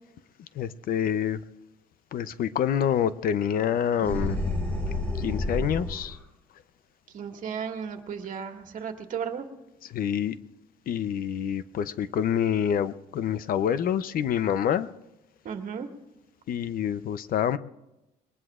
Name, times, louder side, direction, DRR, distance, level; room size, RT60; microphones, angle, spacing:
voice 1, 0.6-1.4 2.1-4.4 5.2-6.2 9.9-10.4 10.9-14.9 16.5-17.6, left 9 dB, 60° left, 14 dB, 0.7 m, -27 dB
sound 1, 4.0-6.2, left 1 dB, 10° left, 6.7 m, -29 dB
voice 2, 7.1-9.5 15.4-15.9, right 7 dB, 50° right, 4 dB, 2.0 m, -34 dB
22.5 x 19.0 x 2.5 m, 0.94 s
cardioid pair, 110°, 17 cm